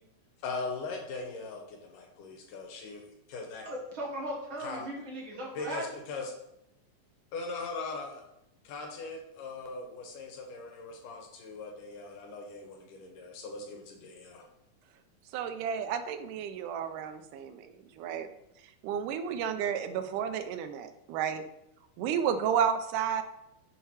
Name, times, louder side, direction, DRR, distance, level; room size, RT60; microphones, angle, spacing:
voice 1, 0.4-3.0 3.3-3.6 4.6-4.9 5.6-6.3 7.3-8.2 8.7-14.4, left 3 dB, 90° left, 2 dB, 2.8 m, -40 dB
voice 2, 3.7-5.8, right 1 dB, 50° right, -3 dB, 1.8 m, -37 dB
voice 3, 15.3-17.7 18.0-18.3 18.8-21.4 22.0-23.2, right 8 dB, 90° right, 9 dB, 2.2 m, -31 dB
6.5 x 4.4 x 4.8 m, 0.84 s
omnidirectional pair, 3.6 m